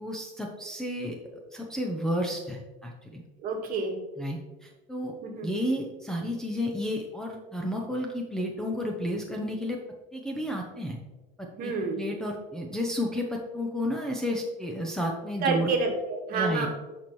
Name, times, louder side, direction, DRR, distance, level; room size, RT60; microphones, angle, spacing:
voice 1, 0.0-3.2 4.2-5.1 5.4-9.8 10.1-11.0 11.4-15.7 16.3-16.7, equal, 5° left, -1 dB, 0.7 m, -32 dB
voice 2, 3.4-4.0 5.2-5.5 11.5-12.0 15.4-16.7, right 4 dB, 45° right, 2 dB, 1.6 m, -28 dB
11.5 x 4.4 x 3.1 m, 1.2 s
cardioid pair, 135°, 20 cm